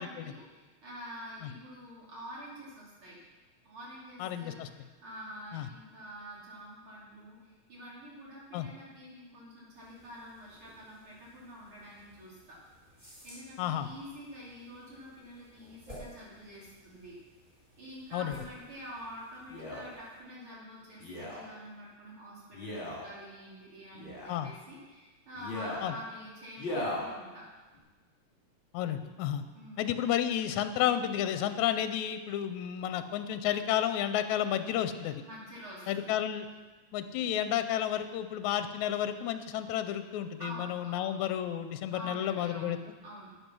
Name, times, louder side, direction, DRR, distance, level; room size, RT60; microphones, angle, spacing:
voice 1, 0.0-3.2 3.6-12.4 13.0-17.1 17.8-27.4 29.5-30.0 35.2-36.1 40.4-41.1 41.9-42.8 43.0-43.3, equal, 45° right, -6 dB, 3.6 m, -47 dB
voice 2, 4.2-4.7 5.5-5.7 8.5-8.7 13.6-13.9 18.1-18.4 24.3-24.5 25.8-25.9 28.7-29.4 29.8-35.2 35.9-36.5 36.9-42.8, left 10 dB, 85° left, 10 dB, 2.0 m, -31 dB
sound 1, 9.7-20.2, equal, 10° right, 3.8 m, -55 dB
Male speech man speaking, 19.5-19.8 21.0-21.4 22.5-23.0 23.9-24.4 25.4-25.8 26.6-27.0 27.7-27.8, left 1 dB, 45° left, 3.4 m, -37 dB
11.0 x 9.4 x 6.1 m, 1.3 s
omnidirectional pair, 3.4 m